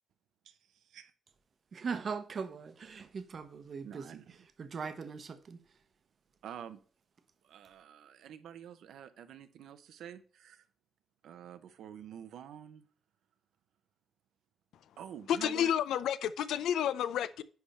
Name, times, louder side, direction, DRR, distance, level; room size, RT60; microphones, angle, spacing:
voice 1, 0.4-1.1 3.8-4.4 6.4-6.8 7.4-10.6 11.2-12.8 15.0-15.7, right 9 dB, 80° right, 0.8 m, -48 dB
voice 2, 1.7-4.2 4.6-5.6, right 5 dB, 40° right, 0.8 m, -40 dB
voice 3, 15.3-17.4, left 10 dB, 90° left, 0.5 m, -30 dB
10.5 x 3.5 x 4.1 m
cardioid pair, 150°, 0 cm